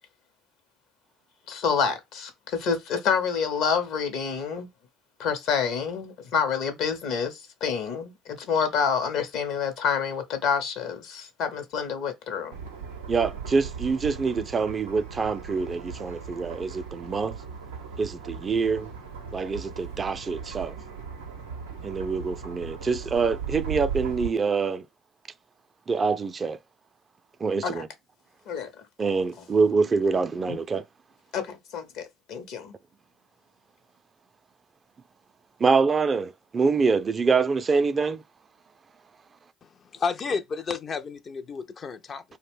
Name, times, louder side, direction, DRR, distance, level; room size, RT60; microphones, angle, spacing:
voice 1, 1.5-4.7 5.2-12.5 27.6-27.8 28.5-28.7 30.5-30.6 31.3-32.7, left 6 dB, 70° left, 0.7 m, -28 dB
sound 1, 12.5-24.3, right 6 dB, 90° right, 0.5 m, -38 dB
voice 2, 13.1-17.4 18.0-18.9 19.3-20.7 21.8-24.9 25.9-26.6 27.4-27.9 29.0-30.8 35.6-38.2, right 4 dB, 35° right, 0.3 m, -25 dB
voice 3, 39.9-42.2, left 5 dB, 45° left, 0.4 m, -31 dB
2.4 x 2.1 x 3.4 m
hypercardioid pair, 55°, 0 cm